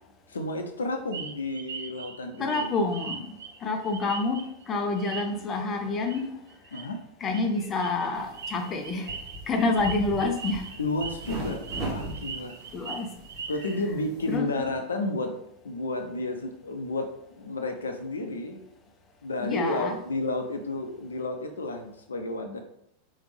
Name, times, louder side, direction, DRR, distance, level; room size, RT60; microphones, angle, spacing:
voice 1, 0.3-2.8 6.7-7.0 10.8-12.5 13.5-15.4 15.6-18.6 19.2-22.6, left 2 dB, 70° left, 0.6 m, -31 dB
sound 1, 1.1-4.6 5.0-5.6 6.0-6.2 6.5-6.8 7.3-13.8, right 5 dB, 65° right, 0.6 m, -40 dB
voice 2, 2.4-3.3 3.6-4.4 4.7-6.3 7.2-9.1 9.5-10.6 12.7-13.1 14.3-14.7 19.4-20.0, left 3 dB, 25° left, 0.6 m, -28 dB
sound 2, 8.1-14.4, right 1 dB, 30° right, 1.0 m, -39 dB
3.6 x 3.4 x 3.3 m
figure-of-eight pair, 90°, 0 cm